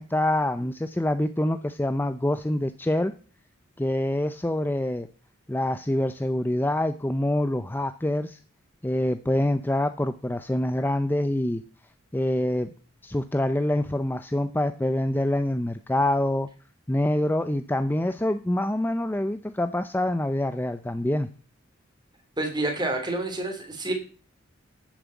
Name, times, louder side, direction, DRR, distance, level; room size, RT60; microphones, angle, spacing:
voice 1, 0.0-3.1 3.8-5.1 5.5-8.4 8.8-11.6 12.1-12.7 13.0-16.5 16.9-21.3, left 1 dB, 10° left, 10 dB, 0.5 m, -26 dB
voice 2, 22.4-23.9, right 2 dB, 20° right, 4 dB, 3.1 m, -28 dB
11.0 x 7.4 x 8.2 m, 0.39 s
head